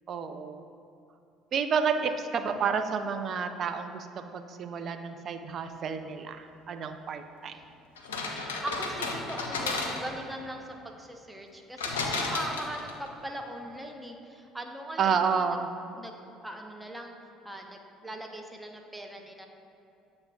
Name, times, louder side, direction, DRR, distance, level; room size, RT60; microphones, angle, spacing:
voice 1, 0.1-0.6 1.5-7.5 15.0-15.7, right 6 dB, 45° right, 7 dB, 0.4 m, -30 dB
sound 1, 8.0-10.3 11.8-13.1, left 3 dB, 80° left, 0.5 m, -33 dB
voice 2, 8.3-15.6 16.0-16.1 16.4-19.5, right 1 dB, 10° right, 3 dB, 0.6 m, -40 dB
7.4 x 3.2 x 4.8 m, 2.6 s
figure-of-eight pair, 55°, 0 cm